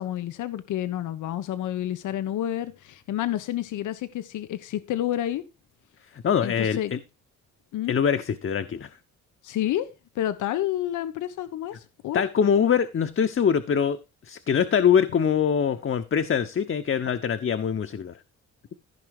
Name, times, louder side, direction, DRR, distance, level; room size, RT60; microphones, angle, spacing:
voice 1, 0.0-5.4 6.4-6.9 7.7-7.9 9.4-9.9 10.1-12.2, left 12 dB, 80° left, 1.2 m, -29 dB
voice 2, 6.1-7.0 7.9-8.9 12.1-14.0 14.2-18.2, left 7 dB, 45° left, 1.2 m, -23 dB
15.0 x 5.7 x 4.9 m
cardioid pair, 90°, 30 cm